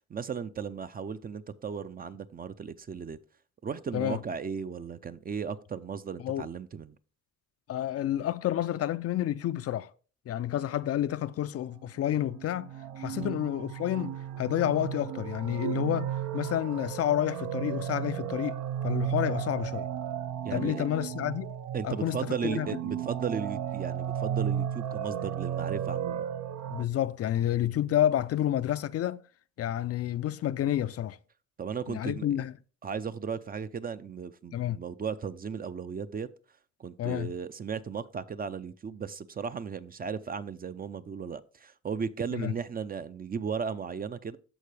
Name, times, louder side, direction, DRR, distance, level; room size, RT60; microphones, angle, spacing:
voice 1, 0.0-3.2 3.6-7.0 13.1-13.3 20.4-20.9 21.7-26.2 31.6-32.3 32.8-36.3 36.8-44.4, right 6 dB, 30° right, 0.5 m, -36 dB
voice 2, 7.7-9.9 10.3-12.7 13.0-18.6 18.8-19.9 20.5-21.5 21.8-22.7 26.7-29.2 29.6-31.2 31.9-32.5 34.5-34.8 37.0-37.3 42.3-42.5, left 12 dB, 55° left, 0.4 m, -29 dB
sound 1, 12.1-26.8, right 9 dB, 70° right, 0.7 m, -34 dB
13.5 x 4.5 x 3.3 m
cardioid pair, 90°, 30 cm